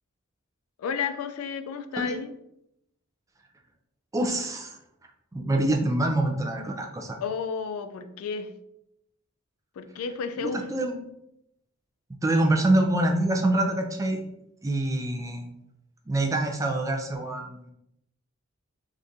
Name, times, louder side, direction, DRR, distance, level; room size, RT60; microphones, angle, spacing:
voice 1, 0.8-2.3 7.2-8.5 9.8-10.6, left 6 dB, 85° left, 9 dB, 0.3 m, -32 dB
voice 2, 4.1-4.8 5.3-7.2 10.4-11.0 12.2-14.2 14.6-15.5 16.1-17.7, right 1 dB, 15° right, 3 dB, 0.3 m, -25 dB
3.5 x 2.5 x 2.6 m, 0.81 s
head